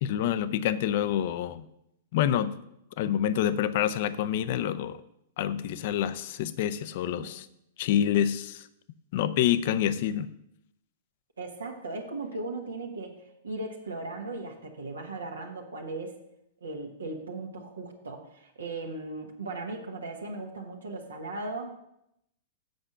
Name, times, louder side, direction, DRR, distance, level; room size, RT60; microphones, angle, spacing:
voice 1, 0.0-1.7 2.1-2.5 3.0-5.0 5.4-7.5 7.8-8.6 9.1-10.3, left 10 dB, 55° left, 14 dB, 0.6 m, -27 dB
voice 2, 11.4-16.2 16.6-21.7, right 2 dB, 80° right, 1 dB, 1.4 m, -37 dB
7.8 x 5.9 x 6.6 m, 0.80 s
figure-of-eight pair, 105°, 0 cm